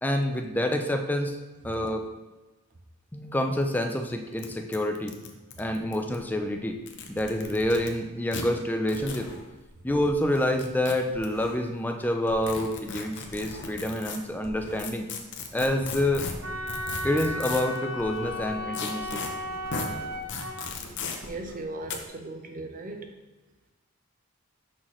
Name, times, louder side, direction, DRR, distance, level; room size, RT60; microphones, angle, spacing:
voice 1, 0.0-1.3 1.6-2.1 3.1-5.2 5.6-6.8 7.1-9.3 9.8-15.1 15.5-16.3 17.0-19.2, left 1 dB, 10° left, 4 dB, 0.5 m, -27 dB
sound 1, 3.6-3.7 3.9-4.0 4.4-4.5 4.7-6.2 6.8-7.9 8.3-8.4 8.9-9.2 10.3-11.3 12.4-14.2 14.8-17.8 18.7-19.3 19.7-19.9 20.3-21.2 21.9-22.0, left 5 dB, 55° left, 0.7 m, -36 dB
sound 2, 6.1-8.0 8.3-10.8 11.1-11.7 12.0-15.0 15.4-22.1, left 1 dB, 75° left, 1.1 m, -46 dB
Wind instrument woodwind instrument, 16.4-20.6, equal, 80° right, 0.8 m, -35 dB
voice 2, 21.2-23.1, right 2 dB, 40° right, 4 dB, 0.7 m, -37 dB
6.2 x 5.7 x 3.1 m, 1.2 s
head